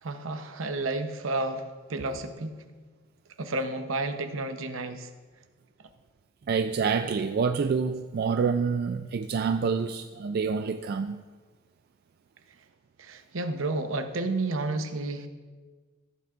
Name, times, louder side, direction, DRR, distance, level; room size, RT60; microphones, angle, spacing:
voice 1, 0.0-2.6 3.4-5.1 13.0-15.3, right 2 dB, 75° right, 8 dB, 0.8 m, -31 dB
voice 2, 6.5-11.2, right 5 dB, 50° right, 8 dB, 0.3 m, -27 dB
15.0 x 9.3 x 2.5 m, 1.4 s
head